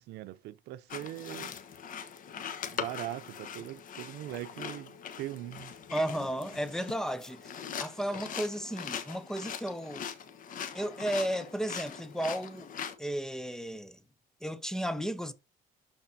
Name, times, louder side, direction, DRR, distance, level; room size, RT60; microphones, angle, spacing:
voice 1, 0.0-1.6 2.7-5.7, right 14 dB, 80° right, 0.7 m, -41 dB
sound 1, 0.9-13.0, left 7 dB, 55° left, 1.2 m, -41 dB
voice 2, 5.9-10.0 10.7-12.7 13.0-14.0 14.4-15.3, equal, 5° left, 0.8 m, -34 dB
12.0 x 4.3 x 2.8 m
cardioid pair, 110°, 17 cm